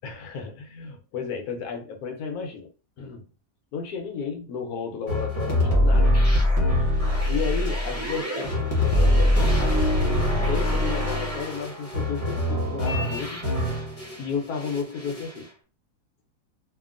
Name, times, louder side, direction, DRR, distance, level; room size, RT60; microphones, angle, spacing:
voice 1, 0.0-2.7 3.0-3.3 3.7-6.2 6.7-6.9 7.3-9.9 10.3-13.4 14.2-15.5, left 5 dB, 70° left, 1.1 m, -33 dB
sound 1, 5.1-14.2 14.6-15.4, left 1 dB, 25° left, 0.8 m, -23 dB
2.8 x 2.6 x 2.4 m
omnidirectional pair, 1.7 m